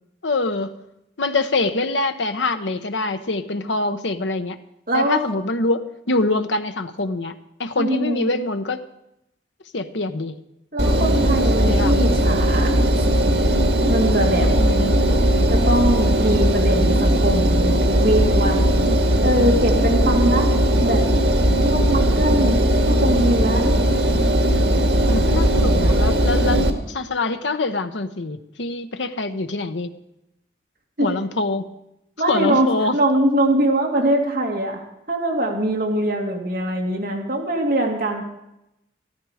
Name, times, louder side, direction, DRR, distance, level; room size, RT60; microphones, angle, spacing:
voice 1, 0.2-0.7 1.2-4.6 4.9-7.3 7.6-8.8 9.7-10.3 11.5-12.0 14.4-15.0 25.1-29.9 31.0-31.7 32.3-33.0, left 2 dB, 90° left, 9 dB, 0.9 m, -24 dB
voice 2, 4.9-5.2 7.8-8.3 10.7-12.7 13.0-13.1 13.9-14.5 15.5-18.9 19.2-20.5 20.8-21.0 21.6-23.6 31.0-31.1 32.2-34.8 35.1-38.3, right 1 dB, 55° right, 1 dB, 2.3 m, -22 dB
Engine, 10.8-26.7, right 1 dB, 85° right, 1.8 m, -18 dB
13.5 x 13.5 x 5.0 m, 0.84 s
head